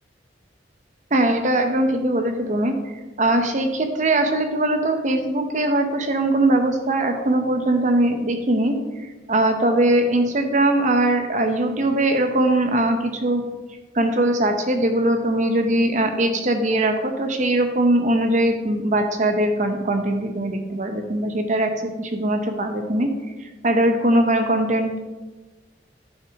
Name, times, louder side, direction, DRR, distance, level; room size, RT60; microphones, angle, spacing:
voice 1, 1.1-2.7 3.2-8.8 9.3-13.4 13.9-23.1 23.6-25.0, right 1 dB, 40° right, 6 dB, 0.9 m, -21 dB
10.0 x 6.1 x 3.6 m, 1.2 s
head